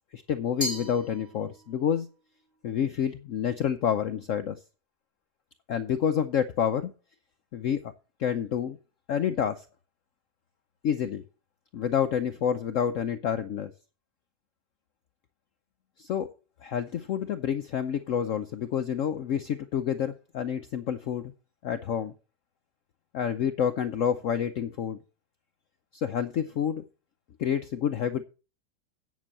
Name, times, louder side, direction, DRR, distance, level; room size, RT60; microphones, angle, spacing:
voice 1, 0.1-2.1 2.6-4.6 5.7-6.9 7.5-7.9 8.2-8.8 9.1-9.7 10.8-11.2 11.7-13.7 16.0-16.3 16.6-21.3 21.6-22.1 23.1-25.0 25.9-26.8 27.4-28.2, left 8 dB, 60° left, 0.9 m, -28 dB
Glass, 0.6-1.8, equal, 30° right, 3.2 m, -36 dB
9.4 x 6.1 x 7.3 m
omnidirectional pair, 1.8 m